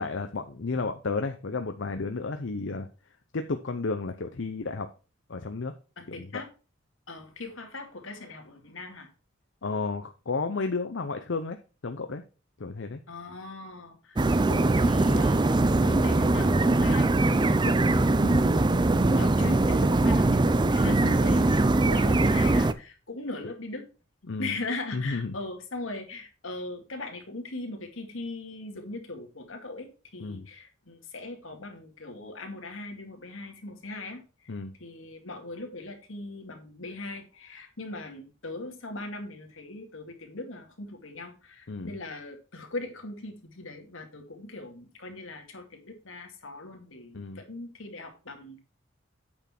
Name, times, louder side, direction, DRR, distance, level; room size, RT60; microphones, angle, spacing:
voice 1, 0.0-2.9 3.3-4.9 5.3-5.7 6.1-6.3 9.6-11.6 11.8-12.2 12.6-13.0 18.2-18.5 20.8-21.2 24.3-24.5 24.9-25.4 30.2-30.5 34.5-34.7 41.7-42.0 47.1-47.4, left 3 dB, 65° left, 8 dB, 0.7 m, -32 dB
voice 2, 6.0-6.5 7.1-9.1 13.1-17.8 19.2-23.8 24.4-34.5 34.8-48.6, left 2 dB, 80° left, 4 dB, 2.3 m, -40 dB
sound 1, 14.2-22.7, right 2 dB, 25° right, 0.5 m, -22 dB
8.7 x 6.2 x 4.4 m, 0.33 s
head